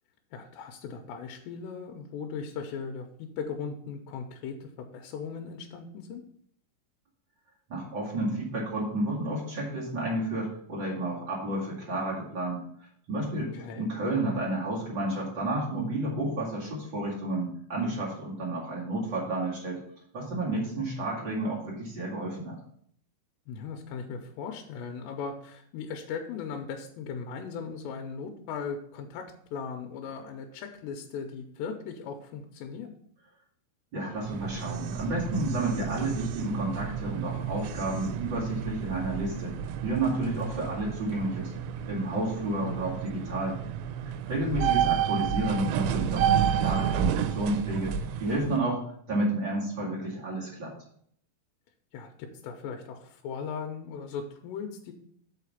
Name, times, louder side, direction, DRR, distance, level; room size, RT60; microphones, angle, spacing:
voice 1, 0.3-6.2 13.5-13.9 23.5-32.9 42.6-42.8 51.9-54.9, left 6 dB, 90° left, 4 dB, 2.9 m, -38 dB
voice 2, 7.7-12.6 13.1-19.8 20.1-22.6 33.9-39.6 39.8-41.5 41.8-43.6 44.3-47.9 48.2-48.8 49.1-50.7, right 2 dB, 35° right, -5 dB, 2.0 m, -31 dB
sound 1, 34.1-48.6, right 8 dB, 90° right, 2.9 m, -31 dB
6.5 x 4.9 x 6.9 m, 0.64 s
omnidirectional pair, 5.0 m